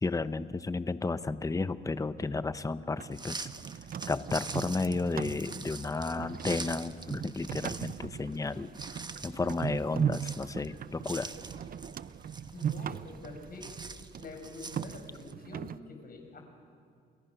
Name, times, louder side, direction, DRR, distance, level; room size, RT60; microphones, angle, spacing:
voice 1, 0.0-3.5 4.1-8.7 9.2-11.3, left 3 dB, 15° left, 13 dB, 0.8 m, -32 dB
sound 1, 3.0-15.8, right 8 dB, 45° right, 0.6 m, -39 dB
sound 2, 3.1-15.3, right 3 dB, 20° right, 1.1 m, -45 dB
voice 2, 12.5-13.7 14.2-16.4, left 3 dB, 50° left, 3 dB, 5.4 m, -46 dB
29.0 x 21.5 x 6.0 m, 2.5 s
cardioid pair, 90°, 20 cm